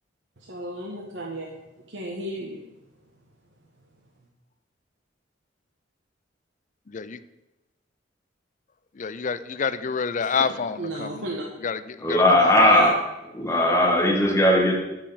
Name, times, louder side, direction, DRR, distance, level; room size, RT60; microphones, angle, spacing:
voice 1, 0.4-1.5 1.9-2.6 10.2-10.3 10.8-11.4 12.3-12.9 13.7-13.8, right 1 dB, 75° right, -2 dB, 1.4 m, -34 dB
voice 2, 9.0-11.1 11.6-12.7, left 6 dB, 40° left, 14 dB, 0.5 m, -28 dB
voice 3, 12.0-12.9 13.3-14.7, left 1 dB, 15° left, 0 dB, 1.9 m, -18 dB
12.5 x 4.8 x 7.3 m, 1.0 s
head